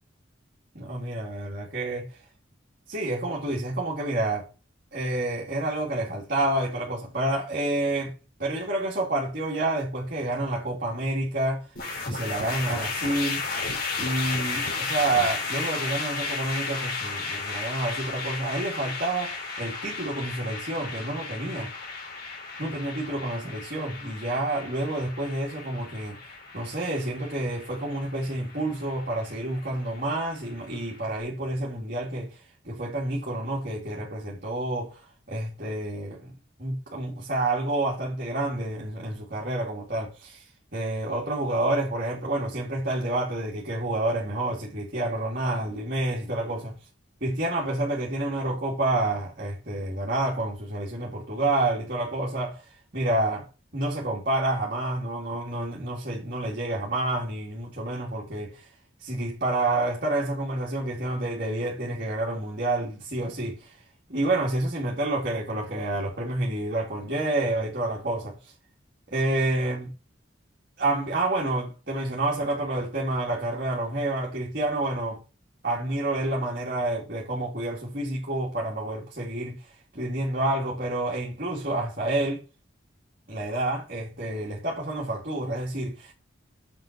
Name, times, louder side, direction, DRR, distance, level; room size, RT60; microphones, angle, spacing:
voice 1, 0.7-2.2 2.9-4.5 4.9-8.1 8.4-11.7 12.0-13.5 14.0-21.7 22.6-26.2 26.5-36.3 36.6-46.7 47.2-53.5 53.7-58.7 59.0-63.8 64.1-68.5 69.1-69.9 70.8-75.2 75.6-82.4 83.3-86.1, right 2 dB, 50° right, 2.5 m, -29 dB
sound 1, 11.7-31.0, left 4 dB, 50° left, 4.3 m, -34 dB
7.3 x 5.9 x 6.6 m
head